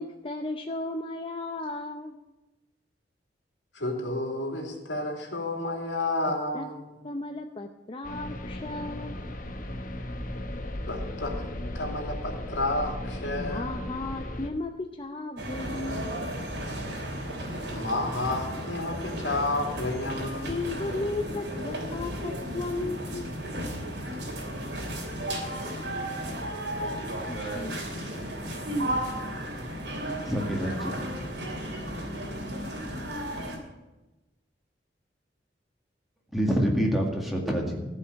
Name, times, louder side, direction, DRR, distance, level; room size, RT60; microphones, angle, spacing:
voice 1, 0.0-2.2 5.6-5.8 6.3-6.7 7.0-9.2 13.4-16.1 20.5-23.3 27.3-27.8, left 2 dB, 30° left, 4 dB, 0.7 m, -35 dB
voice 2, 3.7-6.9 10.9-11.4 11.7-13.8 17.7-20.7, left 2 dB, 90° left, 2 dB, 2.8 m, -31 dB
sound 1, 8.0-14.5, left 1 dB, 45° left, 1.2 m, -36 dB
sound 2, 15.4-33.6, right 1 dB, 65° right, 3.1 m, -34 dB
voice 3, 30.2-31.0 36.3-37.9, equal, ahead, 0 dB, 2.1 m, -27 dB
14.5 x 5.6 x 9.7 m, 1.0 s
head